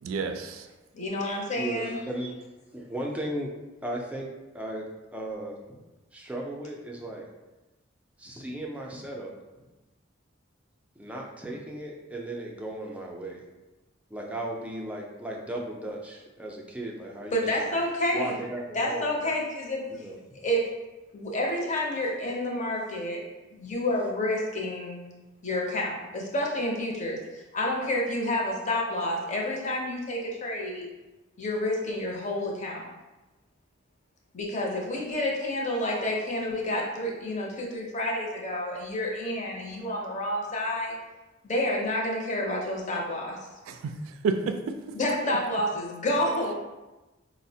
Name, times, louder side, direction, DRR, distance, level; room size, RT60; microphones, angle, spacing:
voice 1, 0.0-0.7 43.7-44.0 44.2-44.8, right 4 dB, 90° right, 7 dB, 0.3 m, -29 dB
voice 2, 0.9-2.0 17.3-18.3 18.7-19.8 20.4-20.7 21.1-23.2 23.5-25.0 25.4-30.9 31.4-32.9 34.3-40.9 41.4-43.4 44.9-46.5, left 1 dB, 35° left, -1 dB, 0.6 m, -29 dB
voice 3, 1.6-2.3 2.7-3.5 3.8-4.3 4.5-4.9 5.1-5.8 6.1-7.3 8.2-9.3 11.0-13.4 14.1-17.8 18.1-19.3 19.9-20.2, right 1 dB, 5° right, -1 dB, 0.4 m, -36 dB
4.8 x 2.0 x 2.7 m, 1.1 s
head